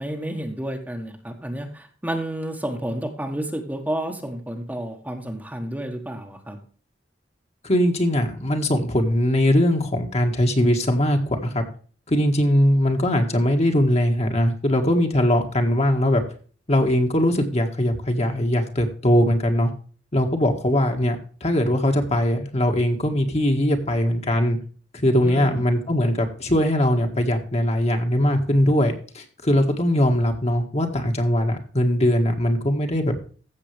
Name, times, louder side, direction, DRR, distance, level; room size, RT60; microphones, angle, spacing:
voice 1, 0.0-6.6 25.2-25.6, right 1 dB, 10° right, 3 dB, 1.3 m, -30 dB
voice 2, 7.6-11.7 12.1-16.2 16.7-19.7 20.1-24.6 24.9-33.2, left 1 dB, 35° left, 4 dB, 1.8 m, -21 dB
15.0 x 7.2 x 3.4 m, 0.41 s
head